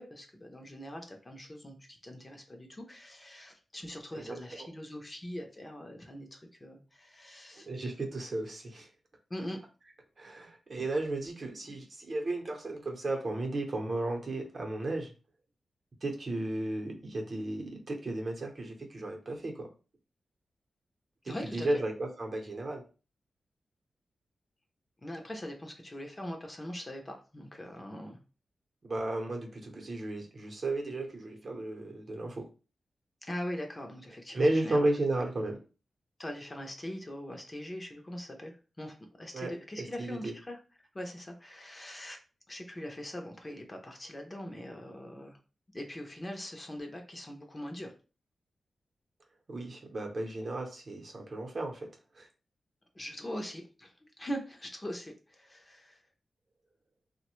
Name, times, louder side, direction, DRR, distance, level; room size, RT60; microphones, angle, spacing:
voice 1, 0.0-7.7 9.3-9.6 21.3-21.8 25.0-28.2 30.8-30.9 33.2-34.9 36.2-42.2 42.5-45.4 45.7-47.9 52.9-56.0, equal, 25° left, 3 dB, 0.6 m, -42 dB
voice 2, 4.1-4.7 7.7-8.9 10.2-15.1 16.0-19.7 21.2-22.8 28.9-32.5 34.3-35.6 39.3-39.5 40.0-40.3 49.5-51.9 52.2-52.3, right 2 dB, 45° right, 2 dB, 0.7 m, -34 dB
3.1 x 2.1 x 3.0 m, 0.34 s
wide cardioid pair, 110°, 0 cm